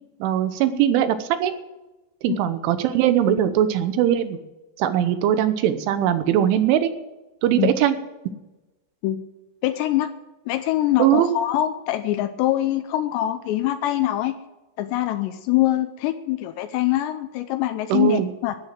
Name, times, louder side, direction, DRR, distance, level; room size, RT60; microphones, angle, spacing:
voice 1, 0.2-1.5 2.2-4.4 4.8-6.9 7.4-8.0 11.0-11.3 17.9-18.3, right 10 dB, 85° right, 10 dB, 3.5 m, -20 dB
voice 2, 9.6-10.1 10.5-14.4 14.8-18.6, left 14 dB, 80° left, 10 dB, 2.6 m, -24 dB
13.5 x 9.8 x 7.7 m, 1.0 s
omnidirectional pair, 5.5 m